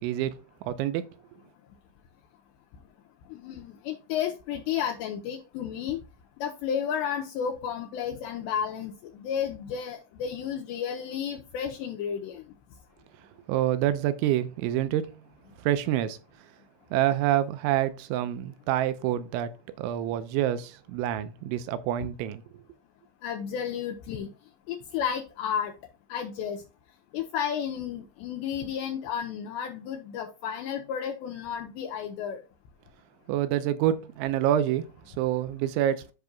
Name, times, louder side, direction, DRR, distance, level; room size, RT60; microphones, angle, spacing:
voice 1, 0.0-1.0 13.5-15.1 15.6-16.2 16.9-19.5 19.8-22.4 33.3-36.1, right 12 dB, 80° right, 3.0 m, -27 dB
voice 2, 3.3-6.0 6.4-12.4 23.2-24.3 24.7-25.7 26.1-26.6 27.1-32.4, left 8 dB, 75° left, 2.8 m, -32 dB
13.0 x 5.3 x 2.3 m
omnidirectional pair, 5.5 m